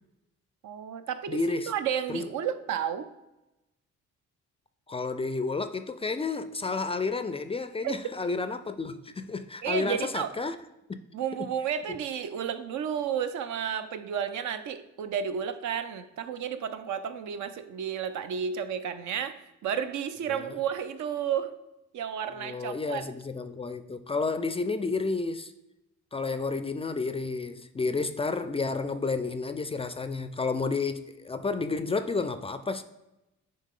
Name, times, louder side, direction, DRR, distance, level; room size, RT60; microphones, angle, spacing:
voice 1, 0.6-3.1 7.8-7.9 9.6-10.3 11.1-21.6 21.9-23.1, right 8 dB, 70° right, 0.6 m, -32 dB
voice 2, 1.3-1.7 2.1-2.3 4.9-10.6 10.9-11.0 11.4-11.5 20.3-20.6 22.4-25.5 26.1-32.8, left 4 dB, 20° left, 0.3 m, -31 dB
9.5 x 3.3 x 3.7 m
cardioid pair, 90°, 30 cm